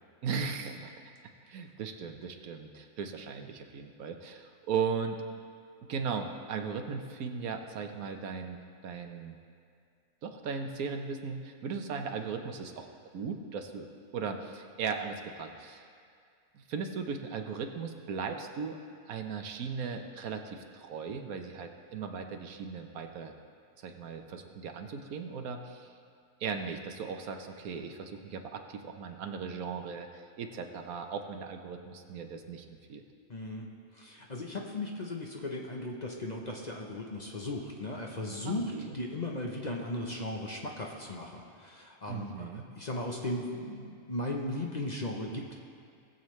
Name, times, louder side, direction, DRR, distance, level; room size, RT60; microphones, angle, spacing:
voice 1, 0.2-0.9 1.5-5.2 5.9-9.3 10.2-12.9 13.1-15.9 16.5-18.8 19.1-23.3 23.8-25.9 26.4-33.0 38.4-39.0 42.1-42.7, right 5 dB, 70° right, 5 dB, 1.3 m, -37 dB
voice 2, 33.3-33.7 33.9-42.5 42.8-45.5, left 1 dB, 35° left, 0 dB, 0.7 m, -37 dB
19.5 x 7.3 x 3.2 m, 2.3 s
omnidirectional pair, 1.6 m